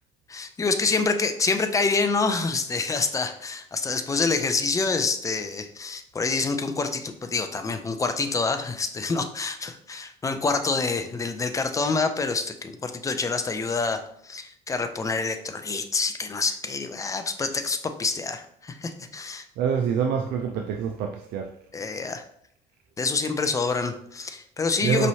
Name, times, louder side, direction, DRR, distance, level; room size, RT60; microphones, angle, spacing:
voice 1, 0.3-19.5 21.7-22.2 23.0-25.1, left 4 dB, 20° left, 7 dB, 0.4 m, -27 dB
voice 2, 19.6-21.5 24.8-25.1, right 7 dB, 80° right, 4 dB, 0.4 m, -26 dB
5.2 x 3.1 x 2.7 m, 0.69 s
cardioid pair, 110°, 17 cm